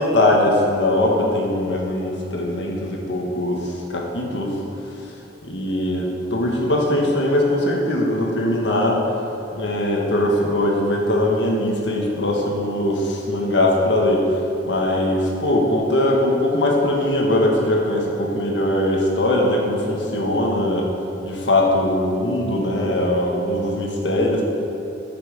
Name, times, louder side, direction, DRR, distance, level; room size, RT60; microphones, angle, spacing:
voice 1, 0.0-4.6 5.5-9.0 9.5-14.2 14.6-20.9 21.2-24.4, left 1 dB, 80° left, -1 dB, 1.6 m, -21 dB
8.1 x 6.0 x 6.5 m, 2.8 s
head